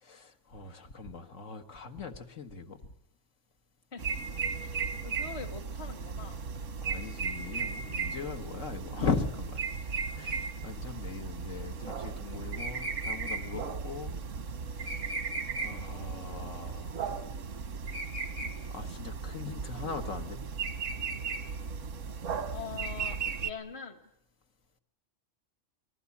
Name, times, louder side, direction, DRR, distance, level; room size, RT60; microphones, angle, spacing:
voice 1, 0.0-2.8 6.8-9.6 10.0-14.2 14.7-15.2 15.6-17.0 18.7-20.4, left 5 dB, 90° left, 5 dB, 1.9 m, -39 dB
sound 1, 4.0-23.5, right 5 dB, 90° right, 1.6 m, -36 dB
voice 2, 4.6-6.4 22.5-24.0, left 5 dB, 55° left, 10 dB, 1.7 m, -43 dB
27.5 x 20.0 x 8.5 m, 0.76 s
omnidirectional pair, 1.3 m